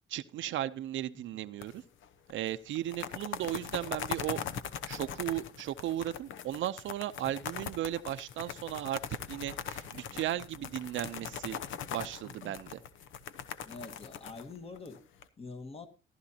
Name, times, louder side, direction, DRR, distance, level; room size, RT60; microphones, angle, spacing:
voice 1, 0.1-1.8 2.3-4.4 4.9-9.0 9.3-11.6 11.9-12.7, right 12 dB, 75° right, 0.6 m, -36 dB
sound 1, 1.6-2.0 2.3-2.4 2.7-15.2, left 8 dB, 75° left, 0.9 m, -41 dB
voice 2, 12.2-12.7 13.6-15.0 15.4-15.9, left 3 dB, 30° left, 1.6 m, -46 dB
14.5 x 12.0 x 2.8 m
cardioid pair, 90°, 20 cm